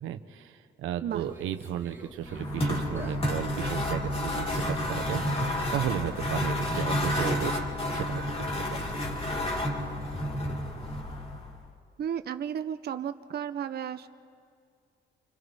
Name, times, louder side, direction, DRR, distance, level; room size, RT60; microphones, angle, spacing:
voice 1, 0.0-7.5 7.9-9.0, right 10 dB, 90° right, 8 dB, 1.0 m, -34 dB
Conversation, 1.1-9.9, right 2 dB, 15° right, 3.9 m, -49 dB
sound 1, 2.2-11.6, left 1 dB, 30° left, 3.2 m, -30 dB
voice 2, 12.0-14.1, right 9 dB, 55° right, 9 dB, 0.7 m, -33 dB
29.5 x 25.0 x 3.5 m, 2.3 s
cardioid pair, 90°, 20 cm